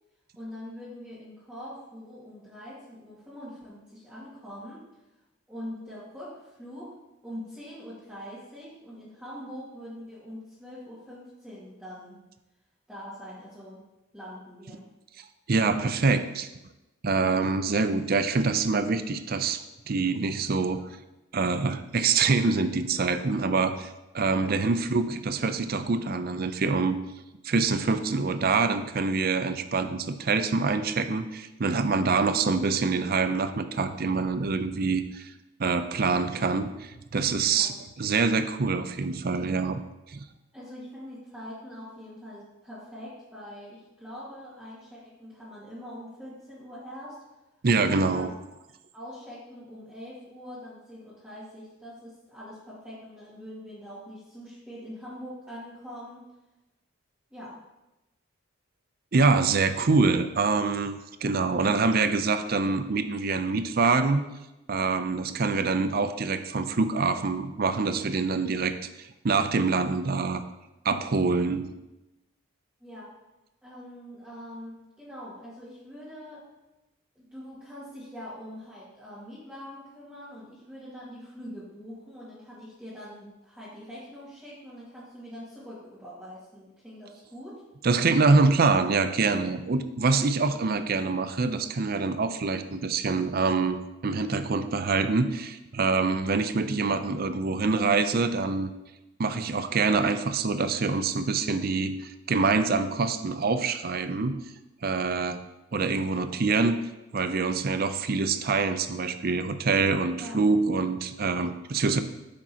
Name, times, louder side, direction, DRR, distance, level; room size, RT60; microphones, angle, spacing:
voice 1, 0.4-4.8 5.5-6.9 7.2-12.2 12.9-13.8 14.1-14.8 24.4-24.6 32.2-32.6 37.5-37.7 40.5-47.2 47.8-56.3 57.3-57.6 65.3-65.4 72.8-73.1 73.6-76.5 77.2-87.6 110.2-110.4, equal, 5° right, -11 dB, 2.0 m, -43 dB
voice 2, 15.5-16.5 17.0-20.8 21.3-27.0 27.4-35.3 35.6-37.7 38.0-39.8 40.1-40.2 47.6-48.3 59.1-64.2 64.7-68.7 69.2-70.4 70.8-71.7 87.8-98.7 99.2-104.4 104.8-105.4 105.7-106.8 107.1-112.0, right 4 dB, 50° right, 10 dB, 0.5 m, -25 dB
9.5 x 7.3 x 2.9 m, 0.97 s
head